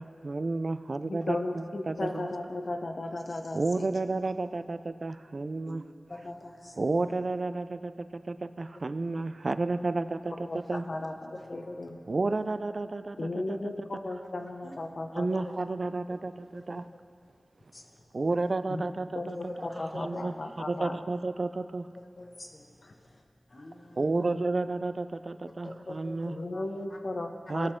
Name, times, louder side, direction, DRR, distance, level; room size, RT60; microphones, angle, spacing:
voice 1, 0.0-2.3 3.5-5.8 6.8-10.9 12.1-13.6 15.1-16.9 18.1-19.7 19.9-20.3 20.7-21.9 24.0-26.4 27.5-27.7, right 3 dB, 55° right, 12 dB, 0.3 m, -31 dB
voice 2, 1.0-3.9 10.0-12.0 13.2-15.4 18.7-18.9 19.1-21.0 22.8-22.9 26.3-27.7, left 2 dB, 65° left, 4 dB, 0.8 m, -36 dB
voice 3, 6.1-7.0 11.5-11.8 12.3-12.4 14.6-14.7 16.5-16.6 17.7-17.9 19.3-20.2 21.9-22.7 23.0-23.2 23.5-24.1 25.6-26.6 26.9-27.0, left 1 dB, 50° left, 1 dB, 1.2 m, -43 dB
18.0 x 6.3 x 3.7 m, 2.4 s
wide cardioid pair, 70°, 0 cm